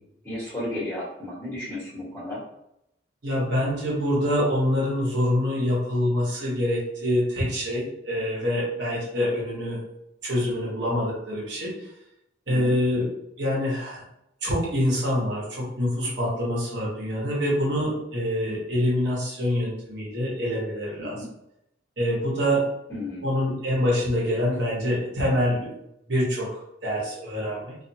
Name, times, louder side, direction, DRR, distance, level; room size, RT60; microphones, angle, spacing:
voice 1, 0.2-2.4 12.5-12.7 21.0-21.2 22.9-23.3, left 1 dB, 15° left, -11 dB, 1.3 m, -33 dB
voice 2, 3.2-9.8 10.2-11.9 12.5-14.0 14.4-21.2 22.0-22.7 23.2-25.7 26.1-27.7, equal, 65° right, -5 dB, 1.0 m, -25 dB
2.4 x 2.4 x 2.7 m, 0.82 s
head